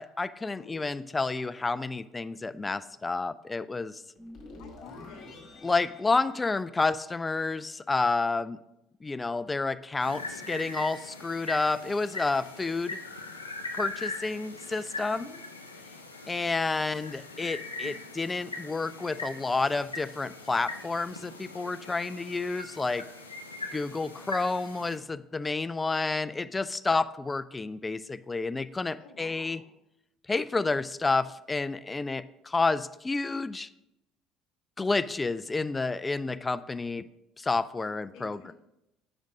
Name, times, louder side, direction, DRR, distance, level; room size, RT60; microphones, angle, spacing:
voice 1, 0.0-4.0 5.6-8.6 9.0-13.0 13.7-15.3 16.3-23.0 23.7-29.6 30.3-33.7 34.8-37.0 37.4-38.5, left 3 dB, 20° left, 14 dB, 0.3 m, -30 dB
voice 2, 0.6-0.9 4.6-5.4 15.1-15.4 23.6-23.8 29.0-29.7 37.8-38.5, left 6 dB, 60° left, 6 dB, 0.8 m, -50 dB
sound 1, 4.2-7.4, left 2 dB, 45° left, 1.9 m, -48 dB
sound 2, 10.0-25.0, left 3 dB, 85° left, 0.5 m, -41 dB
5.3 x 5.1 x 4.9 m, 0.87 s
figure-of-eight pair, 60°, 0 cm